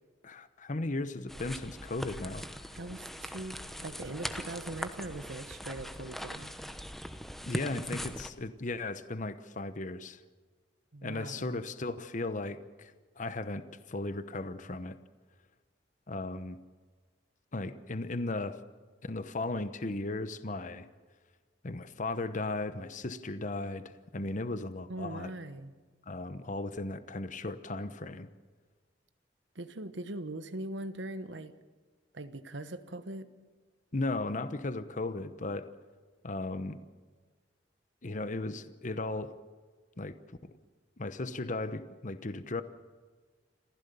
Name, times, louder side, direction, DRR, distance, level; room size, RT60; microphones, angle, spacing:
voice 1, 0.2-2.5 7.5-10.2 11.0-15.0 16.1-16.6 17.5-18.6 19.0-20.9 21.6-25.3 26.1-28.3 33.9-35.7 36.2-36.8 38.0-39.3 40.0-40.1 40.4-40.5 41.0-42.6, left 2 dB, 45° left, 12 dB, 1.0 m, -36 dB
sound 1, 1.3-8.3, equal, ahead, 1.0 m, -41 dB
voice 2, 2.7-6.5 10.9-11.6 24.9-25.7 29.5-31.5 32.1-33.3, right 2 dB, 80° right, 11 dB, 1.2 m, -41 dB
27.5 x 15.0 x 6.9 m, 1.4 s
head